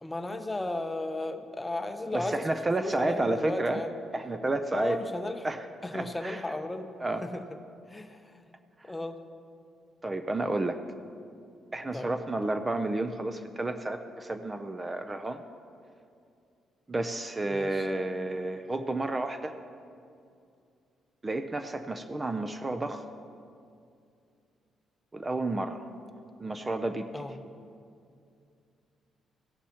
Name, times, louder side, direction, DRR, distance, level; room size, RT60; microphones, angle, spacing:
voice 1, 0.0-2.5 2.8-3.9 4.7-5.4 5.8-6.9 7.2-7.4 7.9-8.3 8.8-9.2 11.9-12.1 17.5-17.9 27.1-27.3, left 2 dB, 15° left, 7 dB, 0.8 m, -34 dB
voice 2, 2.1-3.8 4.1-5.0 5.4-5.7 5.9-6.4 7.0-7.2 10.0-10.8 11.7-15.4 16.9-19.5 21.2-23.0 25.1-25.9 26.4-27.1, right 2 dB, 25° right, 8 dB, 0.5 m, -31 dB
16.0 x 12.0 x 2.9 m, 2.4 s
cardioid pair, 90°, 0 cm